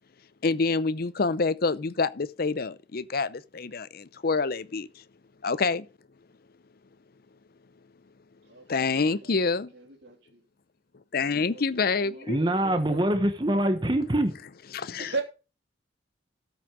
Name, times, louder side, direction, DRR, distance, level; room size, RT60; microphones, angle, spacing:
voice 1, 0.4-4.9 5.4-5.8 8.7-9.7 11.1-12.4 14.7-15.2, left 4 dB, 50° left, 0.6 m, -27 dB
voice 2, 8.5-9.5 9.7-10.4 11.2-13.0 15.0-15.2, right 3 dB, 65° right, 2.9 m, -39 dB
voice 3, 12.3-14.3, right 1 dB, 25° right, 1.1 m, -24 dB
13.0 x 6.1 x 5.1 m
head